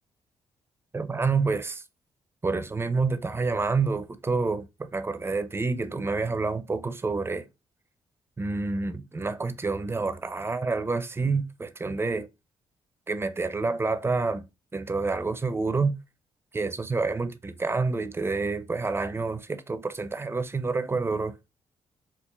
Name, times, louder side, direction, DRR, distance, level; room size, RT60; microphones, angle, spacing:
voice 1, 0.9-1.8 2.4-7.5 8.4-12.3 13.1-14.4 14.7-15.9 16.5-21.3, right 4 dB, 20° right, 0.5 m, -28 dB
4.5 x 2.4 x 2.3 m
cardioid pair, 75°, 11 cm